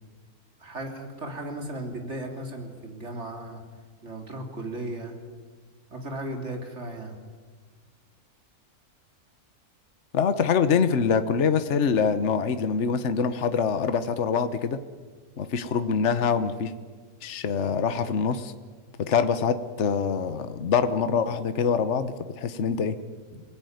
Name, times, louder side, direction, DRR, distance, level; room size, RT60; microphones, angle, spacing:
voice 1, 0.6-3.6 4.0-5.2 5.9-7.2 15.8-15.9, right 1 dB, 45° right, 3 dB, 3.4 m, -36 dB
voice 2, 10.1-14.8 15.4-16.7 17.2-18.5 19.0-22.9, left 6 dB, 50° left, 10 dB, 1.3 m, -24 dB
27.5 x 17.5 x 9.4 m, 1.5 s
omnidirectional pair, 1.6 m